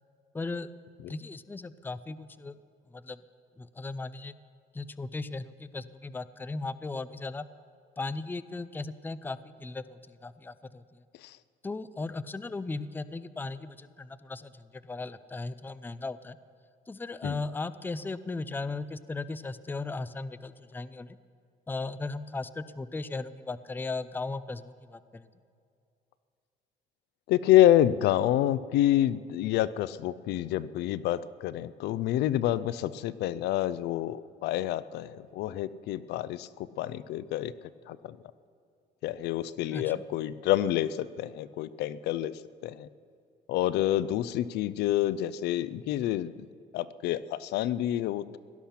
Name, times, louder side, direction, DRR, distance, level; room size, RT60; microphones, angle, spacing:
voice 1, 0.3-0.7 1.1-2.6 2.9-3.2 3.6-4.4 4.7-7.5 8.0-11.0 11.6-16.4 16.9-21.2 21.7-25.3 39.7-40.0, left 3 dB, 10° left, 16 dB, 0.5 m, -37 dB
voice 2, 27.3-38.2 39.0-42.9 43.5-46.3 46.7-48.4, left 13 dB, 80° left, 17 dB, 0.5 m, -28 dB
17.5 x 12.0 x 5.8 m, 2.5 s
cardioid pair, 110°, 17 cm